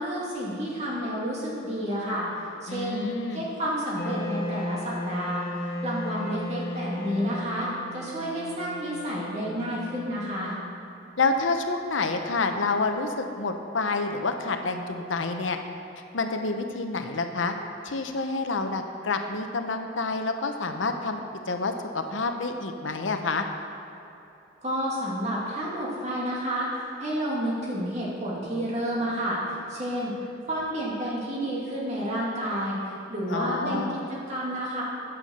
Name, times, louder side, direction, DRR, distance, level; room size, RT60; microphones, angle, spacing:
voice 1, 0.0-2.3 2.6-3.1 3.3-10.5 24.6-29.4 29.7-30.1 30.5-32.8 33.1-34.8, equal, 35° right, -6 dB, 2.6 m, -30 dB
voice 2, 2.7-3.4 11.2-15.6 16.1-17.6 17.8-23.5 33.3-34.0, left 3 dB, 75° left, 6 dB, 0.8 m, -28 dB
Wind instrument woodwind instrument, 3.9-10.9, left 1 dB, 50° left, 1.3 m, -35 dB
9.5 x 7.2 x 6.6 m, 2.9 s
head